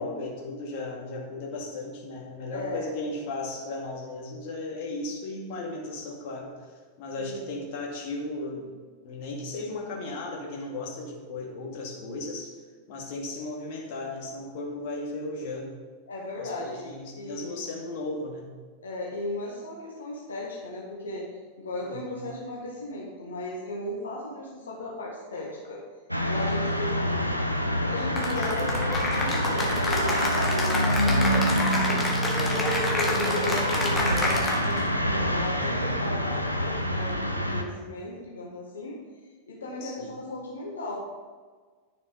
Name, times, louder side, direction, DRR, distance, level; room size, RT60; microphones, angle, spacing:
voice 1, 0.0-6.5 7.0-8.7 9.0-12.6 12.9-15.7 16.4-18.5 21.8-22.2 28.4-28.5 32.3-32.6 35.5-35.8 39.8-40.2, left 2 dB, 45° left, -1 dB, 2.3 m, -36 dB
voice 2, 2.5-2.9 7.2-7.5 16.1-17.6 18.8-21.3 21.6-25.8 26.2-27.2 27.9-31.4 31.7-32.1 32.4-39.0 39.5-41.0, left 2 dB, 70° left, -4 dB, 1.6 m, -36 dB
sound 1, 26.1-37.6, equal, 90° left, 0.8 m, -26 dB
Cheering / Applause, 28.2-34.9, left 1 dB, 15° left, 2.1 m, -29 dB
10.5 x 6.8 x 5.2 m, 1.5 s
figure-of-eight pair, 90°, 0 cm